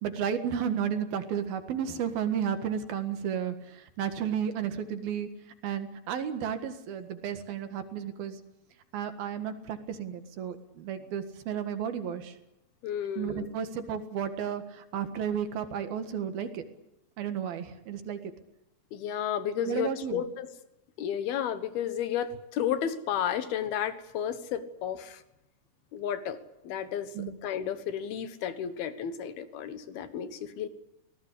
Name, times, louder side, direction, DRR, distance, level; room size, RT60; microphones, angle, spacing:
voice 1, 0.0-5.3 5.6-8.4 8.9-12.3 13.2-16.6 17.2-18.2 19.7-20.2 27.2-27.4, right 8 dB, 70° right, 9 dB, 3.5 m, -33 dB
voice 2, 12.8-13.5 18.9-20.5 21.0-25.2 25.9-26.4 26.6-27.1 27.4-30.7, left 9 dB, 75° left, 12 dB, 3.2 m, -32 dB
25.5 x 18.5 x 8.4 m, 0.88 s
omnidirectional pair, 4.6 m